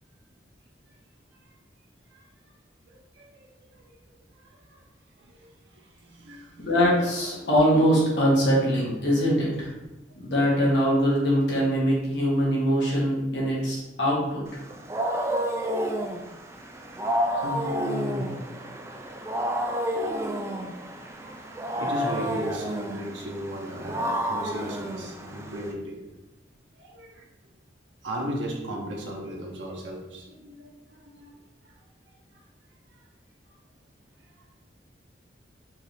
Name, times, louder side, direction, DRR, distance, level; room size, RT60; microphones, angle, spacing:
voice 1, 3.2-3.5 3.9-4.1 4.6-4.8 5.2-6.7 15.4-15.6 17.3-18.4 21.2-26.0 26.8-27.2 28.0-31.3 32.3-32.4, equal, 80° right, -2 dB, 0.9 m, -36 dB
voice 2, 6.6-9.7 10.2-14.6, equal, 70° left, -5 dB, 1.4 m, -23 dB
Wild animals, 14.5-25.7, equal, 15° right, 0.3 m, -30 dB
4.6 x 2.7 x 3.4 m, 0.99 s
head